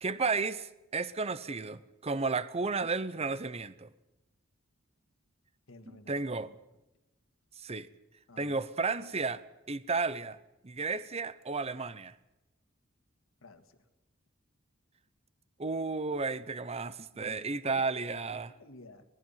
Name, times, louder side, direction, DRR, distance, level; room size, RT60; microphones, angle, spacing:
voice 1, 0.0-3.9 6.1-6.5 7.6-7.9 8.4-10.4 10.6-12.1 15.6-18.5, right 4 dB, 30° right, 0.7 m, -33 dB
voice 2, 5.7-6.5 8.3-8.6 13.4-13.8 17.1-17.4 17.6-19.0, left 2 dB, 75° left, 1.9 m, -53 dB
25.0 x 19.5 x 5.7 m
head